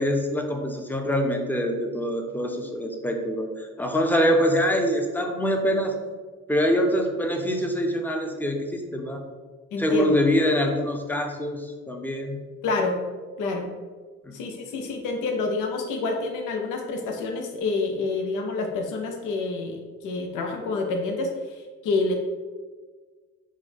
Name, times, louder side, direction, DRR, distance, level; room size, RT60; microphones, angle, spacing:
voice 1, 0.0-5.9 6.5-9.2 9.8-12.4 14.2-14.5, equal, 5° left, 3 dB, 0.6 m, -24 dB
voice 2, 9.7-10.2 12.6-13.0 13.4-13.7 14.3-22.1, left 3 dB, 85° left, 3 dB, 0.6 m, -28 dB
4.8 x 2.2 x 4.2 m, 1.4 s
cardioid pair, 90°, 30 cm